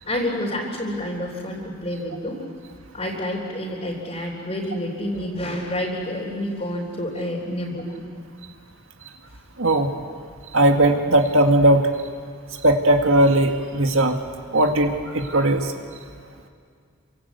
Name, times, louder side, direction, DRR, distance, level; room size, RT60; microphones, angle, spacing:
voice 1, 0.0-2.4 2.9-8.0, left 1 dB, 30° left, -5 dB, 3.6 m, -28 dB
voice 2, 9.6-9.9 10.5-11.8 12.6-14.2 14.5-15.7, right 1 dB, 80° right, 4 dB, 2.1 m, -18 dB
28.0 x 25.5 x 8.3 m, 2.2 s
head